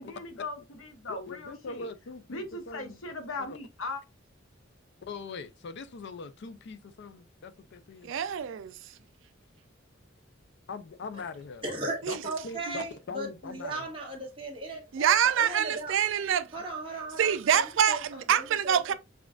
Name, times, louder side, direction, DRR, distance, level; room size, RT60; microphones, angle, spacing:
voice 1, 0.0-1.9 2.3-4.0, left 2 dB, 90° left, 1.0 m, -38 dB
voice 2, 1.1-3.0 3.4-3.6 5.1-8.1 10.7-11.6 12.1-12.2 12.4-13.9, left 4 dB, 60° left, 0.5 m, -41 dB
voice 3, 8.0-8.8 12.0-12.2 14.9-16.5 17.2-18.9, right 9 dB, 70° right, 0.4 m, -25 dB
voice 4, 11.6-12.0 12.2-15.9 16.5-18.9, right 2 dB, 25° right, 1.4 m, -37 dB
5.9 x 2.4 x 2.3 m
head